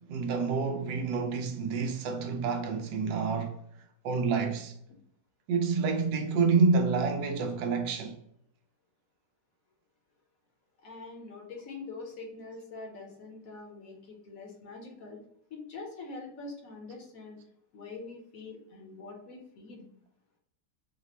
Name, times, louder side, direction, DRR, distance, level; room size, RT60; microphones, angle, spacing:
voice 1, 0.0-3.6 4.0-4.8 5.5-8.2, right 4 dB, 80° right, 1.2 m, -28 dB
voice 2, 10.8-15.2 15.5-17.4 17.7-19.9, left 3 dB, 60° left, 1.1 m, -44 dB
3.2 x 2.0 x 4.0 m
omnidirectional pair, 1.8 m